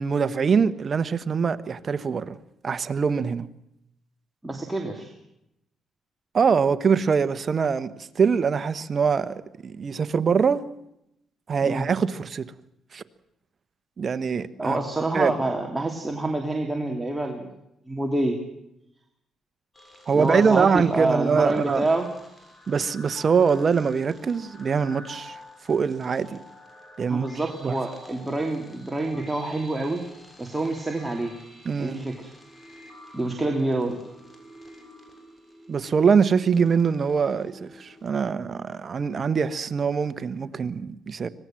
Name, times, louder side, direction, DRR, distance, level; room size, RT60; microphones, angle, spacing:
voice 1, 0.0-2.4 2.6-3.5 6.3-10.6 11.5-12.5 12.9-13.0 14.0-14.8 15.1-15.3 20.1-21.9 22.7-25.4 25.7-26.4 27.0-27.3 27.6-27.8 31.6-32.0 35.7-41.3, right 6 dB, 45° right, 1.2 m, -23 dB
voice 2, 4.4-5.1 11.6-11.9 14.6-17.5 17.9-18.4 20.1-22.1 27.1-30.0 30.4-31.3 31.8-32.3 33.1-34.0, right 2 dB, 10° right, 2.9 m, -27 dB
sound 1, 19.7-38.0, equal, 15° left, 6.9 m, -49 dB
25.0 x 19.0 x 7.6 m
cardioid pair, 90°, 0 cm